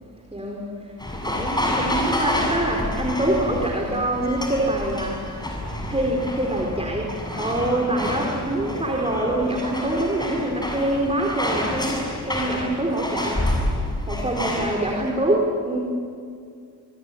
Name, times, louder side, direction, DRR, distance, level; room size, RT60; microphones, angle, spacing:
voice 1, 0.3-0.6 1.1-5.5 5.9-7.1 7.4-13.4 14.1-15.8, right 1 dB, 15° right, -1 dB, 4.5 m, -25 dB
sound 1, 1.0-15.1, left 1 dB, 10° left, 7.3 m, -28 dB
25.5 x 22.5 x 9.9 m, 2.3 s
cardioid pair, 90°, 38 cm